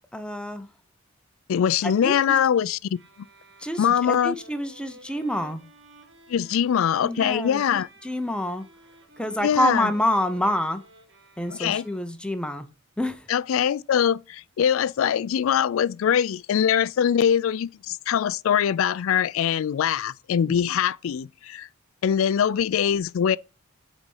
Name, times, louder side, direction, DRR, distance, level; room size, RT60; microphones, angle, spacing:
voice 1, 0.1-0.7 1.8-2.4 3.6-5.6 7.0-8.6 9.2-10.8 11.4-12.7 13.0-13.3 20.4-20.6, left 1 dB, 5° left, 0.7 m, -27 dB
voice 2, 1.5-2.8 3.8-4.4 6.3-7.9 9.4-9.9 11.6-11.8 13.3-21.7 22.0-23.4, left 8 dB, 70° left, 0.3 m, -22 dB
sound 1, 2.9-12.4, right 3 dB, 60° right, 1.4 m, -52 dB
8.0 x 4.2 x 5.4 m
head